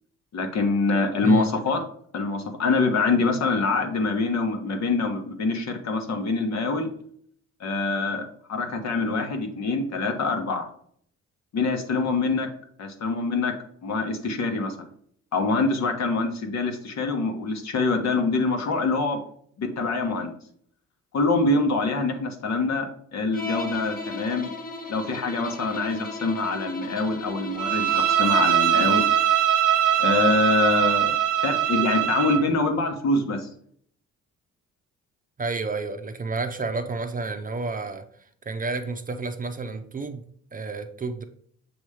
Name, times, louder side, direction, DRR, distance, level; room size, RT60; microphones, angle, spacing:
voice 1, 0.3-1.8 2.1-6.9 7.6-10.7 11.5-12.5 12.8-13.5 13.8-14.7 15.3-19.2 19.6-20.3 21.1-22.9 23.1-24.5 24.9-29.0 30.0-31.1 31.4-33.5, left 3 dB, 60° left, 5 dB, 1.3 m, -25 dB
Bowed string instrument, 23.3-29.3, left 2 dB, 30° left, 1.2 m, -36 dB
Bowed string instrument 2, 27.6-32.5, right 10 dB, 80° right, 0.7 m, -22 dB
voice 2, 35.4-41.2, right 3 dB, 30° right, 7 dB, 0.6 m, -31 dB
7.1 x 3.0 x 4.9 m, 0.62 s
cardioid pair, 90°, 30 cm